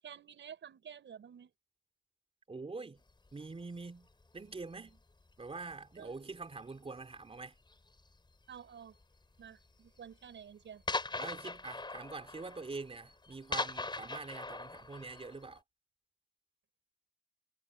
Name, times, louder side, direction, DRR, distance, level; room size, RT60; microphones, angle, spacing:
voice 1, 0.0-1.5 6.0-6.3 8.5-9.0 9.4-10.8, right 8 dB, 65° right, 7.1 m, -51 dB
voice 2, 2.5-3.0 3.3-4.1 4.3-5.0 5.4-7.6 11.2-15.6, right 3 dB, 30° right, 3.7 m, -45 dB
sound 1, 3.3-3.4 4.2-4.6 4.9-5.3 5.7-6.0 6.4-6.5 6.8-6.9 7.7-8.1 8.9-9.0 9.4-9.5 9.9-10.0 10.2-10.3 10.9-15.6, left 3 dB, 20° left, 5.8 m, -40 dB
cardioid pair, 85°, 21 cm